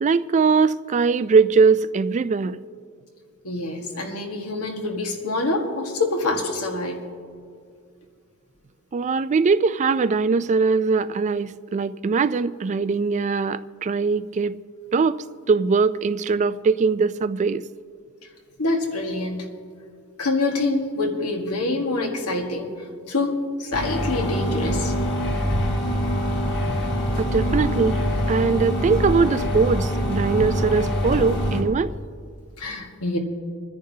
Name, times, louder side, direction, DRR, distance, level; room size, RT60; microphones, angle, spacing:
voice 1, 0.0-2.6 8.9-14.6 14.9-17.6 27.2-28.0 28.3-31.9, right 4 dB, 35° right, 0.3 m, -21 dB
voice 2, 3.4-7.0 18.6-19.5 20.2-22.7 23.1-24.9 32.6-33.2, left 2 dB, 85° left, 1.6 m, -26 dB
sound 1, 23.7-31.6, equal, 55° left, 1.9 m, -24 dB
26.5 x 10.5 x 2.8 m
head